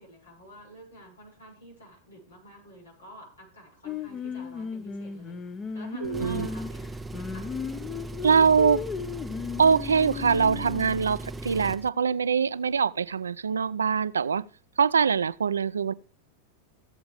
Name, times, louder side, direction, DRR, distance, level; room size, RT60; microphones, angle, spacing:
voice 1, 0.0-5.4 5.7-6.8 7.2-7.5, equal, 90° left, 6.1 m, -48 dB
Singing, 3.9-11.1, left 6 dB, 30° left, 0.9 m, -36 dB
Engine, 6.0-11.9, right 2 dB, 15° right, 0.4 m, -38 dB
voice 2, 6.0-6.5 8.2-8.8 9.6-14.4 14.8-15.9, right 6 dB, 85° right, 0.4 m, -23 dB
15.5 x 7.9 x 3.4 m
hypercardioid pair, 95°, 0 cm